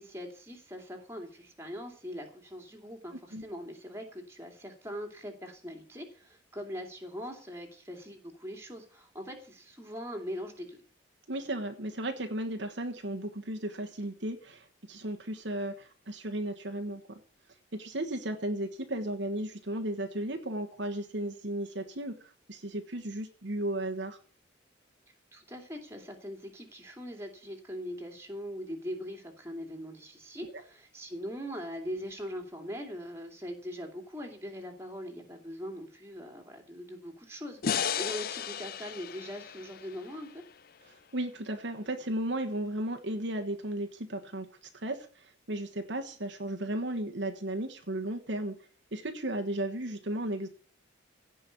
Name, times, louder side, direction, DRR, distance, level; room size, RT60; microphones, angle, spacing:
voice 1, 0.0-10.8 25.3-40.4, equal, 15° right, 3 dB, 2.6 m, -41 dB
voice 2, 11.3-17.2 17.7-22.1 22.5-24.2 40.9-44.5 44.8-48.5 48.9-50.5, right 1 dB, 60° right, 5 dB, 1.4 m, -35 dB
sound 1, 37.6-40.9, left 8 dB, 45° left, 0.5 m, -35 dB
16.5 x 5.5 x 8.3 m, 0.42 s
head